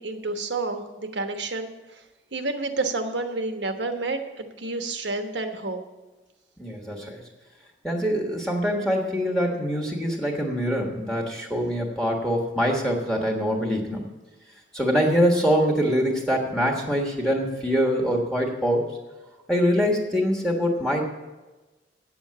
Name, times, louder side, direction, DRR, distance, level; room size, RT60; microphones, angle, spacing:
voice 1, 0.0-2.0 2.3-5.8, right 3 dB, 85° right, 6 dB, 1.2 m, -30 dB
voice 2, 6.6-7.2 7.8-14.0 14.7-18.9 19.5-21.0, equal, 5° left, 1 dB, 1.4 m, -24 dB
9.1 x 7.1 x 8.6 m, 1.2 s
head